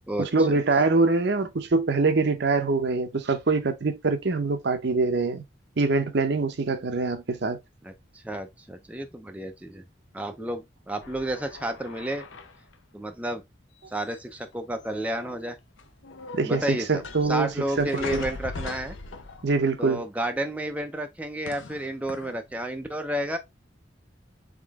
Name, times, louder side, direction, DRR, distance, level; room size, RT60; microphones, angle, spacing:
voice 1, 0.2-5.4 5.8-7.6 16.3-18.2 19.4-20.0, right 3 dB, 60° right, 0.7 m, -24 dB
voice 2, 7.8-9.8 10.1-12.2 12.9-13.4 13.9-15.6 16.4-19.0 19.8-23.4, right 1 dB, 10° right, 0.5 m, -31 dB
sound 1, 11.0-12.7 13.9-14.5 14.8-15.4 15.8-19.7 21.5-22.4, left 3 dB, 85° left, 0.7 m, -40 dB
3.8 x 3.7 x 3.5 m
head